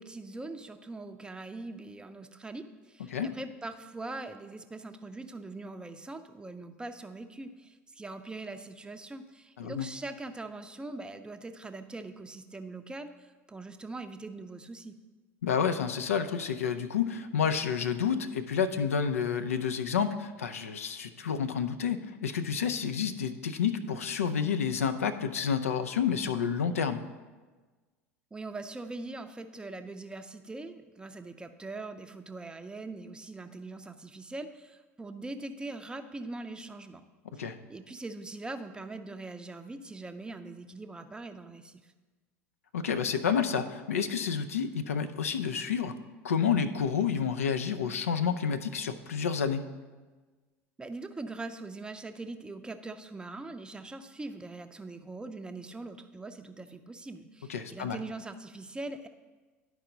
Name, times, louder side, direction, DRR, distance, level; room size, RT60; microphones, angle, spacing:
voice 1, 0.0-15.0 28.3-37.0 37.4-41.8 50.8-59.1, right 2 dB, 10° right, 8 dB, 0.5 m, -42 dB
voice 2, 9.6-9.9 15.4-27.0 37.3-37.6 42.7-46.0 46.2-49.6 57.5-58.0, left 7 dB, 80° left, 10 dB, 0.4 m, -29 dB
11.0 x 4.7 x 3.9 m, 1.3 s
figure-of-eight pair, 75°, 8 cm